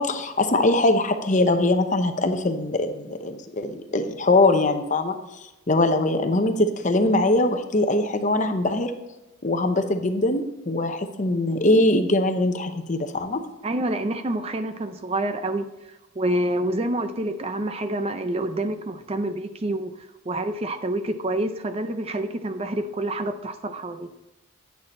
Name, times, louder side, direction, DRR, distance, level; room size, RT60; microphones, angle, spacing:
voice 1, 0.0-5.2 5.7-8.9 9.4-13.4, left 2 dB, 35° left, 7 dB, 0.8 m, -22 dB
voice 2, 13.6-15.7 16.2-19.9 20.3-24.1, right 1 dB, 30° right, 9 dB, 0.5 m, -27 dB
9.6 x 6.6 x 4.2 m, 1.0 s
head